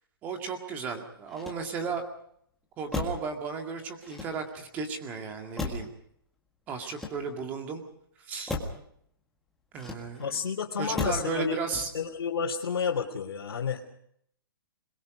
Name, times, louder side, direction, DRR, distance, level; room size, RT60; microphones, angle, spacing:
voice 1, 0.2-2.0 2.8-5.9 6.7-7.8 8.3-8.5 9.7-10.4 10.8-11.9, right 5 dB, 15° right, 5 dB, 2.1 m, -34 dB
Motor vehicle (road), 1.2-2.0 2.9-3.3 4.0-4.7 5.6-6.0 6.8-7.6 8.5-8.8 9.8-10.3 10.9-11.3 11.7-12.1, left 2 dB, ahead, 1.8 m, -36 dB
voice 2, 10.2-11.6 11.9-13.8, left 6 dB, 80° left, -3 dB, 3.2 m, -30 dB
27.5 x 21.5 x 5.2 m, 0.69 s
hypercardioid pair, 175°, 13 cm